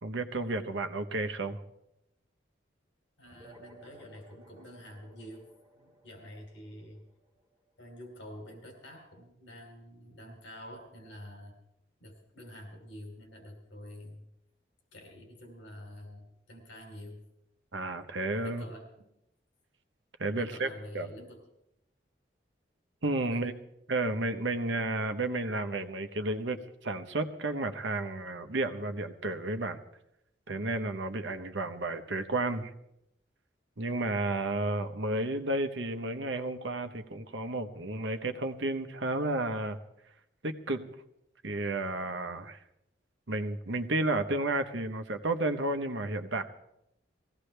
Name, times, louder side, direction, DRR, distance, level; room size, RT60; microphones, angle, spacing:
voice 1, 0.0-1.6 17.7-18.6 20.2-20.7 20.9-21.1 23.0-23.5 23.9-29.8 30.5-32.7 33.8-39.8 40.4-40.9 41.4-42.6 43.3-46.4, right 2 dB, 80° right, 8 dB, 1.1 m, -32 dB
voice 2, 3.2-7.0 7.8-11.5 12.0-14.2 14.9-17.2 18.4-19.1 20.3-21.4 23.2-23.5 34.2-34.4, equal, 85° left, 2 dB, 3.0 m, -48 dB
sound 1, 3.2-8.1, right 1 dB, 25° right, 4.0 m, -57 dB
20.0 x 16.0 x 3.4 m, 0.81 s
head